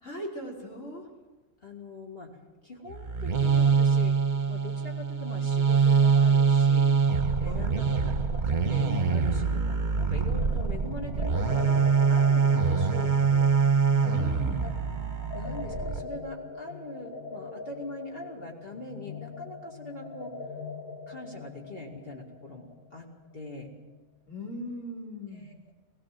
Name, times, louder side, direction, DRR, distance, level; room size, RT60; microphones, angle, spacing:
voice 1, 0.0-1.0 7.4-7.7 14.0-14.6 24.3-25.5, left 1 dB, 60° left, -3 dB, 4.3 m, -39 dB
voice 2, 1.6-2.4 2.6-4.2 4.5-6.9 7.4-13.5 14.6-14.7 15.3-20.3 21.1-23.1 23.3-23.7 25.3-25.7, left 2 dB, 45° left, 0 dB, 2.8 m, -42 dB
sound 1, 2.9-16.0, right 5 dB, 35° right, 1.1 m, -24 dB
sound 2, 10.0-23.5, left 5 dB, 90° left, 1.4 m, -42 dB
19.5 x 17.0 x 7.7 m, 1.2 s
omnidirectional pair, 1.4 m